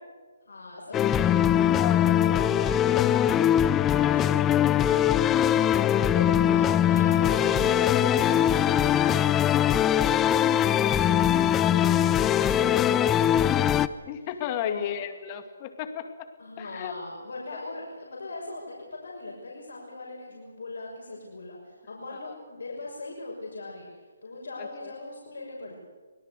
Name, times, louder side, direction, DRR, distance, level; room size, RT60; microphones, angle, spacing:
voice 1, 0.5-11.3 11.6-14.3 14.6-14.9 16.4-23.9 24.2-25.8, left 2 dB, 75° left, -2 dB, 6.2 m, -40 dB
sound 1, 0.9-13.9, left 10 dB, 15° left, 0.6 m, -22 dB
voice 2, 1.7-3.3 5.4-5.5 10.8-11.0 14.1-16.1 16.6-16.9, left 10 dB, 30° left, 8 dB, 2.4 m, -35 dB
25.0 x 17.5 x 8.2 m, 1.5 s
hypercardioid pair, 155°, 0 cm